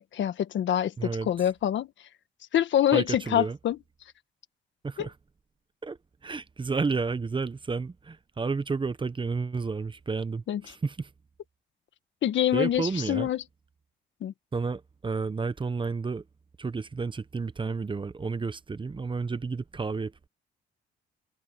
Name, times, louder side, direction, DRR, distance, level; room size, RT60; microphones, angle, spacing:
voice 1, 0.0-1.9 2.5-3.8 5.0-5.1 10.5-10.6 12.2-13.4 14.2-14.3, left 11 dB, 70° left, 1.5 m, -25 dB
voice 2, 1.0-1.3 2.9-3.6 4.8-5.1 5.8-11.1 12.5-13.3 14.5-16.2 16.6-20.3, right 4 dB, 25° right, 0.9 m, -31 dB
cardioid pair, 90°, 20 cm